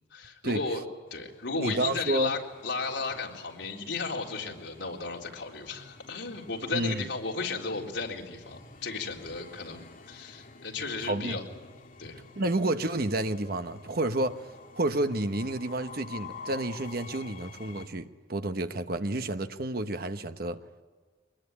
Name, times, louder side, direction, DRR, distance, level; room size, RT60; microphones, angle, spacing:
voice 1, 0.1-0.8 1.1-11.4 12.0-12.2, left 4 dB, 70° left, -1 dB, 3.9 m, -34 dB
Train, 1.1-17.9, left 4 dB, 50° left, 2.4 m, -49 dB
voice 2, 1.5-2.3 6.7-7.0 11.1-11.4 12.4-14.4 14.7-20.6, right 1 dB, 55° right, 9 dB, 1.1 m, -30 dB
24.0 x 21.0 x 9.9 m, 1.4 s
head